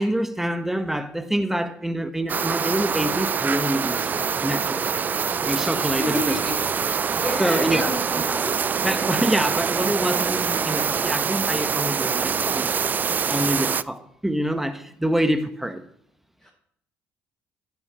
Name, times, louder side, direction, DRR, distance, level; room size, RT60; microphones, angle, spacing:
voice 1, 0.0-5.1 5.4-6.4 7.4-7.9 8.3-8.5 8.8-15.8, right 1 dB, 5° right, 9 dB, 1.6 m, -26 dB
sound 1, 2.3-13.8, right 6 dB, 35° right, 0.5 m, -25 dB
voice 2, 6.0-6.6 7.1-8.5 16.4-16.5, left 1 dB, 15° left, -2 dB, 4.2 m, -29 dB
12.5 x 9.9 x 4.6 m, 0.68 s
supercardioid pair, 70°, 5 cm